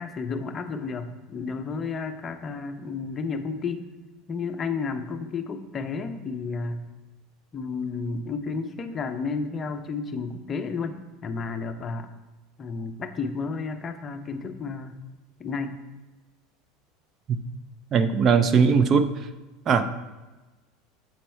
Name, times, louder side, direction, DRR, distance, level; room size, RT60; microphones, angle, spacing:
voice 1, 0.0-3.9 4.3-6.9 7.5-12.1 12.6-15.0 15.4-15.8, left 4 dB, 25° left, 7 dB, 0.6 m, -32 dB
voice 2, 17.9-19.1 19.7-20.0, right 5 dB, 35° right, 11 dB, 0.4 m, -20 dB
7.7 x 4.5 x 4.3 m, 1.2 s
supercardioid pair, 125°, 0 cm